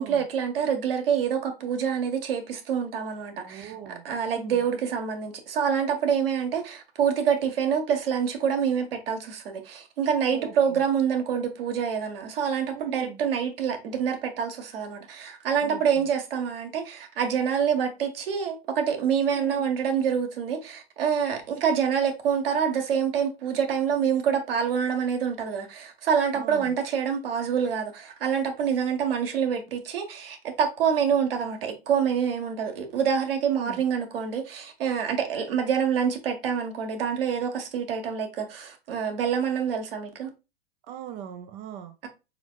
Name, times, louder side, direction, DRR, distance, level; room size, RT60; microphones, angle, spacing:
voice 1, 0.0-40.3, right 7 dB, 60° right, 1.5 m, -26 dB
voice 2, 3.4-4.6 10.3-10.8 12.7-13.2 15.6-16.0 19.3-19.6 26.4-26.8 33.6-33.8 40.9-42.0, right 10 dB, 25° right, 0.4 m, -41 dB
4.9 x 4.4 x 2.4 m
figure-of-eight pair, 105°, 32 cm